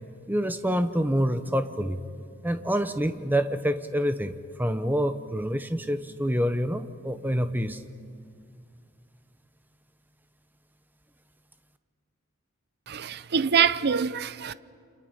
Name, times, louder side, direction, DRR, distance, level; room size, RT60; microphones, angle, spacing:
voice 1, 0.3-2.0 2.4-7.8, equal, 10° right, 0.8 m, -27 dB
voice 2, 12.9-14.5, right 7 dB, 50° right, 0.6 m, -25 dB
29.0 x 26.5 x 5.6 m
head